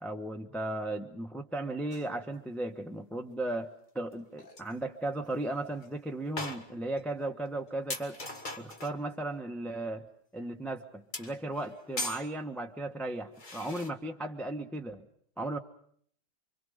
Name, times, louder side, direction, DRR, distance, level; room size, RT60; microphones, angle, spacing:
voice 1, 0.0-3.7 3.9-8.2 8.6-10.1 10.3-15.1 15.4-15.6, right 2 dB, ahead, 3 dB, 1.2 m, -36 dB
sound 1, 1.9-2.1 4.1-4.2 4.4-4.7 5.3-5.4 5.8-5.9 6.4-7.0 7.4-7.5 7.9-9.0 11.1-12.3 13.3-13.9, left 2 dB, 25° left, 1.8 m, -40 dB
29.0 x 24.5 x 5.3 m, 0.63 s
omnidirectional pair, 1.9 m